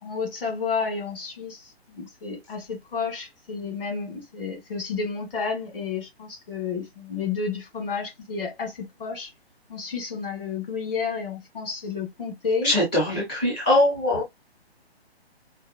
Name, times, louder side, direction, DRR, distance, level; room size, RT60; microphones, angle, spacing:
voice 1, 0.0-9.3 9.7-12.7, left 5 dB, 60° left, 1.7 m, -31 dB
voice 2, 12.6-14.3, left 1 dB, 10° left, 0.4 m, -22 dB
4.6 x 2.1 x 2.2 m
figure-of-eight pair, 135°, 32 cm